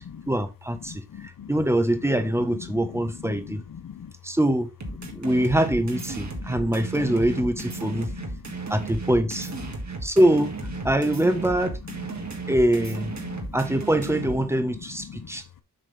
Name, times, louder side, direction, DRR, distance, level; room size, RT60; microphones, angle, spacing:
voice 1, 0.0-3.6 4.2-4.7 5.1-8.1 8.7-9.5 10.0-10.5 10.8-11.8 12.5-13.1 13.5-15.4, right 1 dB, 10° right, 1.2 m, -23 dB
voice 2, 0.9-1.5 2.7-4.1 5.0-5.2 6.3-6.7 7.9-8.6 9.7-9.8 12.2-12.3 13.2-13.6 15.1-15.3, left 8 dB, 80° left, 0.8 m, -41 dB
sound 1, 4.8-14.4, right 3 dB, 55° right, 1.9 m, -34 dB
7.7 x 6.1 x 3.5 m
wide cardioid pair, 110°, 34 cm